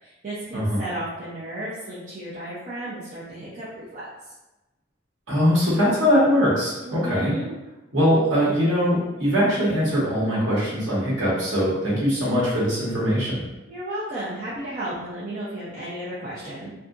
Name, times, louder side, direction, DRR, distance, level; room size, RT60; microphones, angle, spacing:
voice 1, 0.0-4.3 6.8-7.5 13.7-16.7, right 1 dB, 45° right, -9 dB, 0.5 m, -33 dB
voice 2, 5.3-7.3 7.9-13.4, equal, 85° right, -7 dB, 1.1 m, -21 dB
2.7 x 2.3 x 2.4 m, 1.0 s
head